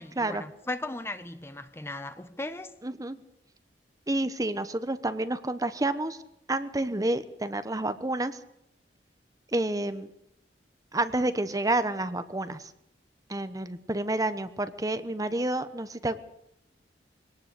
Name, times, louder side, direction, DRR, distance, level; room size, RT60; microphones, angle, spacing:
voice 1, 0.0-2.7, left 2 dB, 15° left, 0.9 m, -37 dB
voice 2, 2.8-3.2 4.1-6.2 6.5-8.4 9.5-10.1 10.9-12.7 13.3-16.2, right 2 dB, 20° right, 1.0 m, -29 dB
23.0 x 18.5 x 8.3 m
head